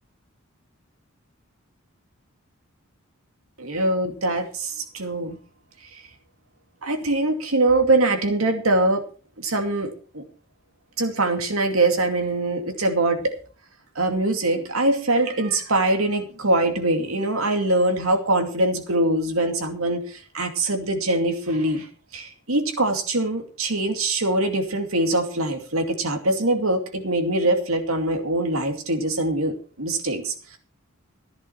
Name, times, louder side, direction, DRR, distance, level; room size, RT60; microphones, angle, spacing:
voice 1, 3.6-5.4 6.8-9.0 9.4-10.2 11.0-13.4 14.0-21.9 22.1-30.6, right 2 dB, 85° right, 5 dB, 2.4 m, -23 dB
15.0 x 10.5 x 4.4 m, 0.39 s
head